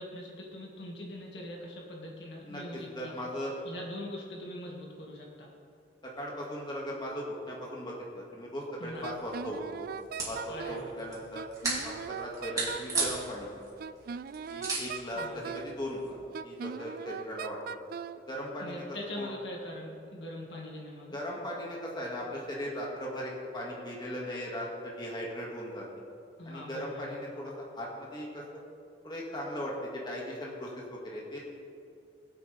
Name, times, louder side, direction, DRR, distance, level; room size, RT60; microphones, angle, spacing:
voice 1, 0.0-3.3 3.6-5.5 8.8-9.1 10.5-10.9 15.1-15.5 18.6-21.2 26.4-27.2, left 1 dB, 75° left, -2 dB, 2.1 m, -42 dB
voice 2, 2.5-3.6 6.0-9.9 10.2-11.4 11.8-13.5 14.5-17.8 18.3-18.8 19.2-19.3 21.1-25.9 26.5-28.6 29.0-31.4, equal, 25° left, -3 dB, 2.0 m, -38 dB
sound 1, 8.9-16.1, right 3 dB, 20° right, 2.9 m, -38 dB
Wind instrument woodwind instrument, 9.0-10.9 11.4-13.3 13.8-15.8 16.3-18.2, right 6 dB, 55° right, 0.3 m, -39 dB
21.0 x 8.1 x 3.5 m, 2.4 s
head